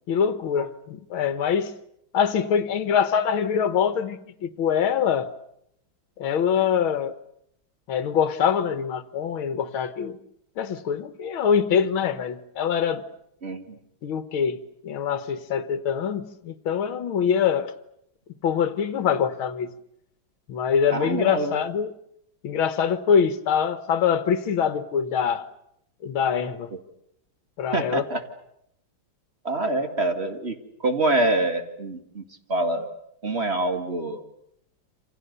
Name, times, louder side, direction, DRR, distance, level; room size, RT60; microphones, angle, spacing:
voice 1, 0.1-1.7 2.1-5.3 6.2-7.2 7.9-10.2 10.6-13.0 14.0-17.7 18.4-19.7 20.5-21.9 22.4-25.5 26.0-26.7 27.6-28.0, left 7 dB, 75° left, 2.1 m, -24 dB
voice 2, 13.4-13.8 20.9-21.6 27.7-28.2 29.4-30.6 30.8-32.2 32.5-32.9 33.2-34.2, right 2 dB, 30° right, 2.4 m, -25 dB
28.5 x 27.0 x 6.8 m
omnidirectional pair, 2.3 m